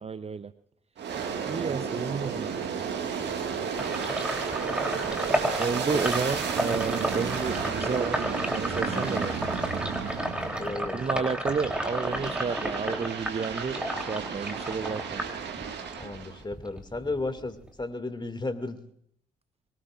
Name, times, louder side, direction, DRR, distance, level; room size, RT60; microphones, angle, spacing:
voice 1, 0.0-0.5 1.4-2.5 5.6-8.3 8.5-9.4 10.9-15.2, right 5 dB, 30° right, 13 dB, 0.7 m, -31 dB
Aircraft, 1.0-11.0 11.5-16.4, right 6 dB, 60° right, 1.9 m, -33 dB
Sink (filling or washing), 3.8-16.0 16.4-17.8, equal, 5° right, 3.4 m, -32 dB
voice 2, 10.2-11.2 14.8-15.0 16.0-18.8, left 2 dB, 20° left, 9 dB, 2.3 m, -35 dB
23.0 x 19.5 x 2.5 m, 0.69 s
hypercardioid pair, 40°, 20 cm